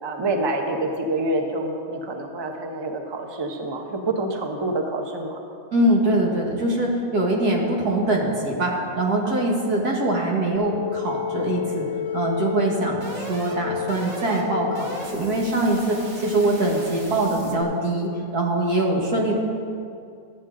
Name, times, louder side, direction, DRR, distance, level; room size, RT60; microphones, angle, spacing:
voice 1, 0.0-5.4 9.2-9.4, right 2 dB, 25° right, 3 dB, 0.6 m, -27 dB
voice 2, 5.7-11.9 12.1-19.3, right 1 dB, 85° right, -1 dB, 2.1 m, -23 dB
sound 1, 10.5-17.6, left 6 dB, 50° right, 1.7 m, -32 dB
13.0 x 8.7 x 3.8 m, 2.4 s
omnidirectional pair, 1.6 m